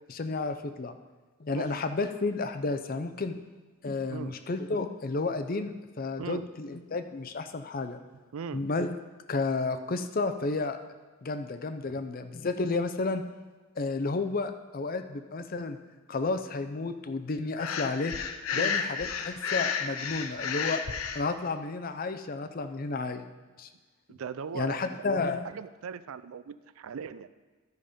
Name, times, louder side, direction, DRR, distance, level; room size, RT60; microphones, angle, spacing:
voice 1, 0.1-0.9 1.4-3.4 3.8-8.0 8.5-9.0 9.3-10.8 11.2-13.2 13.8-15.8 16.1-18.1 18.5-20.8 21.1-23.2 23.6-23.7 24.5-25.5, left 3 dB, 45° left, 9 dB, 0.5 m, -31 dB
voice 2, 1.5-1.8 4.1-4.4 6.2-6.5 8.3-8.6 11.8-12.0 18.5-18.8 24.1-25.0 25.4-27.3, right 6 dB, 80° right, 14 dB, 0.4 m, -39 dB
Breathing, 17.6-21.2, left 6 dB, 90° left, 0.7 m, -32 dB
12.0 x 5.3 x 5.1 m, 1.3 s
head